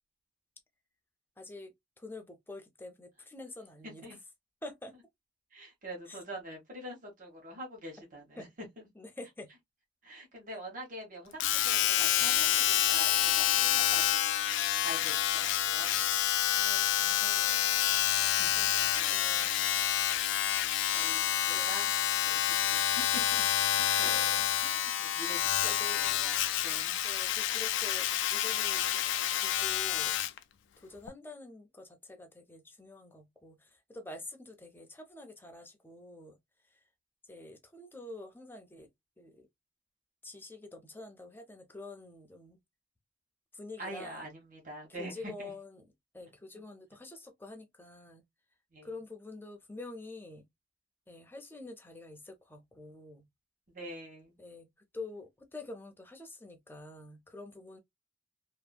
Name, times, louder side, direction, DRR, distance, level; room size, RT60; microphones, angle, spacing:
voice 1, 1.4-4.2 4.6-5.0 6.1-6.2 8.4-8.5 8.9-9.5 16.5-17.8 18.5-18.8 19.1-19.6 21.5-21.7 24.0-24.5 25.6-26.0 27.0-28.9 29.4-30.2 30.8-36.4 36.7-36.8 37.2-38.9 39.2-39.5 40.2-42.6 43.5-44.3 45.0-45.9 46.1-48.2 48.8-50.5 51.1-53.3 54.4-57.8, left 2 dB, 10° left, 0.6 m, -47 dB
voice 2, 5.5-8.5 10.0-14.4 14.8-15.4 15.6-16.0 18.1-19.2 20.5-20.6 20.9-21.9 22.2-23.4 23.8-24.2 24.6-27.0 43.8-45.5 48.7-48.9 53.7-54.4, right 1 dB, 45° right, 1.2 m, -45 dB
Domestic sounds home sounds, 11.4-30.4 31.1-31.2, left 12 dB, 70° left, 0.3 m, -28 dB
2.7 x 2.6 x 2.2 m
head